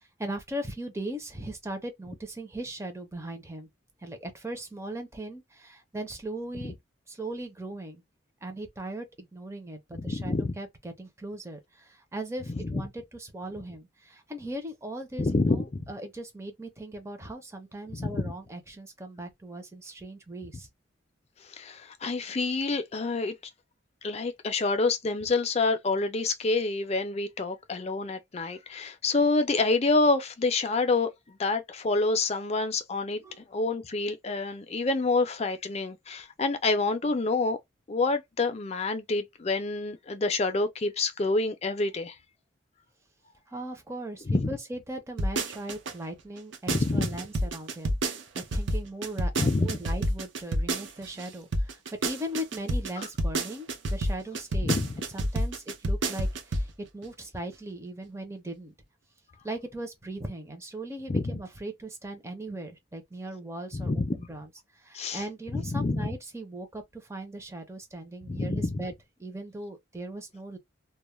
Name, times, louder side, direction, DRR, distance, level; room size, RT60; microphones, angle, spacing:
voice 1, 0.2-3.7 4.0-6.7 7.1-8.0 8.4-20.7 33.2-33.4 43.5-54.7 55.1-56.7 56.9-58.7 59.4-64.5 64.8-68.9 69.2-70.6, right 1 dB, 15° right, 0.5 m, -39 dB
voice 2, 9.9-10.5 12.5-12.8 15.2-15.8 17.9-18.3 21.5-23.3 24.0-33.2 33.5-37.6 37.9-42.1 44.3-44.5 46.7-47.2 49.4-49.8 53.0-53.1 54.6-54.9 61.1-61.4 63.7-64.1 64.9-65.2 65.5-66.1 68.2-68.8, left 3 dB, 30° left, 0.4 m, -27 dB
sound 1, 45.2-45.9 46.4-51.3 51.5-56.7 57.0-57.1, right 1 dB, 65° right, 0.6 m, -28 dB
2.2 x 2.1 x 3.0 m
head